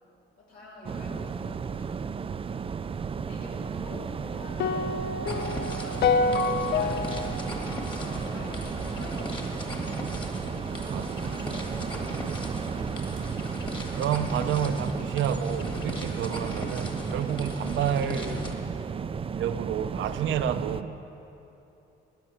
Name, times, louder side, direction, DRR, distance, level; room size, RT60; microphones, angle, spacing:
voice 1, 0.4-2.4 3.2-5.1 5.7-6.7 7.8-10.6 11.5-12.8, left 2 dB, 85° left, -5 dB, 3.7 m, -47 dB
Big waves at a beach on the Atlantic Ocean, 0.8-20.8, right 6 dB, 30° right, 0.4 m, -34 dB
sound 1, 4.6-8.9, left 4 dB, 60° left, 0.5 m, -28 dB
sound 2, 5.3-18.5, left 1 dB, 25° left, 1.7 m, -39 dB
voice 2, 13.9-18.7 19.4-21.0, right 8 dB, 75° right, 11 dB, 0.7 m, -30 dB
15.0 x 9.8 x 5.8 m, 2.9 s
cardioid pair, 90°, 20 cm